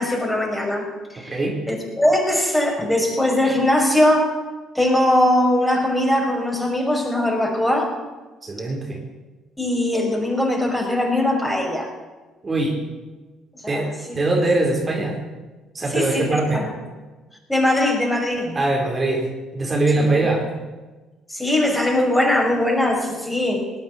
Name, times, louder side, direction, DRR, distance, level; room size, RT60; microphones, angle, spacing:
voice 1, 0.0-1.4 1.7-4.3 4.7-7.9 9.6-11.9 13.6-14.2 15.9-16.7 17.5-18.6 19.9-20.1 21.3-23.7, left 1 dB, 5° left, 0 dB, 5.9 m, -21 dB
voice 2, 1.2-1.6 8.4-9.0 12.4-12.8 13.7-15.2 15.7-16.7 18.5-20.5, right 2 dB, 30° right, -1 dB, 4.3 m, -22 dB
20.0 x 8.9 x 8.2 m, 1.2 s
hypercardioid pair, 55°, 0 cm